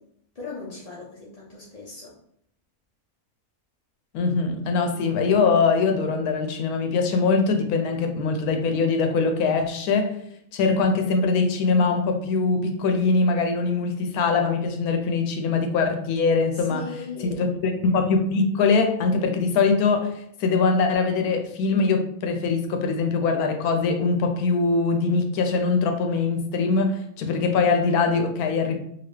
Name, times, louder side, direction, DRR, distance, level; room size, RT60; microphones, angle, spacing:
voice 1, 0.3-2.2 16.5-17.4, left 3 dB, 50° left, -6 dB, 0.4 m, -37 dB
voice 2, 4.1-10.2 10.5-16.8 17.2-28.8, left 4 dB, 90° left, 5 dB, 1.1 m, -22 dB
2.8 x 2.6 x 3.2 m, 0.71 s
omnidirectional pair, 1.5 m